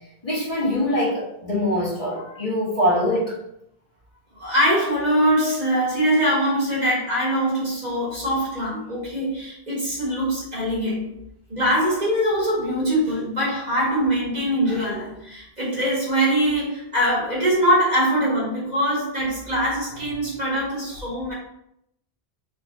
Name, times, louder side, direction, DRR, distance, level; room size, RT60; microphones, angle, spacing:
voice 1, 0.2-3.3, equal, 35° left, -8 dB, 1.5 m, -23 dB
voice 2, 4.4-11.1 11.5-21.3, equal, 45° right, -6 dB, 1.6 m, -22 dB
3.9 x 3.9 x 2.5 m, 0.77 s
omnidirectional pair, 1.0 m